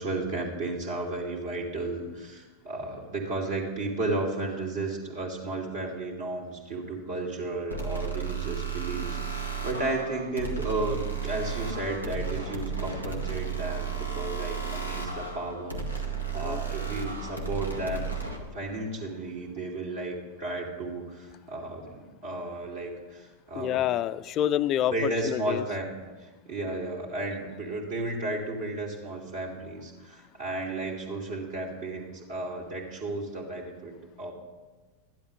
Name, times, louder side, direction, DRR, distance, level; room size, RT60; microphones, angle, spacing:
voice 1, 0.0-18.1 18.4-23.8 24.9-34.3, right 2 dB, 55° right, -3 dB, 2.5 m, -33 dB
sound 1, 7.7-18.4, right 5 dB, 85° right, 1.6 m, -33 dB
voice 2, 23.5-25.6, left 11 dB, 35° left, 15 dB, 0.4 m, -28 dB
13.0 x 11.0 x 5.3 m, 1.3 s
figure-of-eight pair, 90°, 0 cm